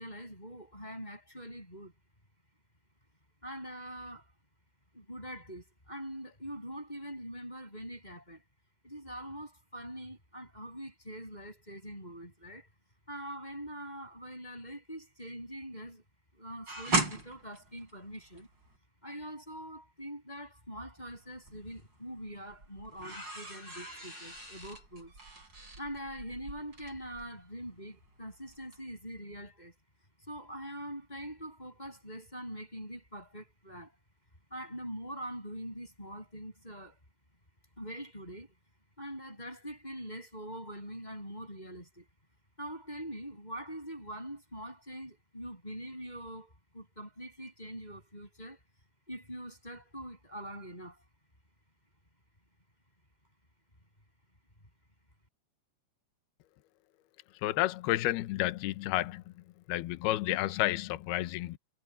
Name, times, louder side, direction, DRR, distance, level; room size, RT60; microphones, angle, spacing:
voice 1, 0.0-1.9 3.4-4.3 4.9-8.4 8.8-12.7 13.1-16.0 16.3-18.5 19.0-25.1 25.8-29.8 30.3-34.0 34.5-37.0 37.8-38.5 39.0-42.1 42.6-48.6 49.1-51.0, equal, 10° left, 6.8 m, -43 dB
sound 1, 16.7-18.8 21.0-21.8 22.2-28.2 28.5-28.8, right 2 dB, 25° right, 7.5 m, -37 dB
voice 2, 57.4-59.2 59.7-61.6, left 16 dB, 75° left, 2.8 m, -31 dB
omnidirectional pair, 4.9 m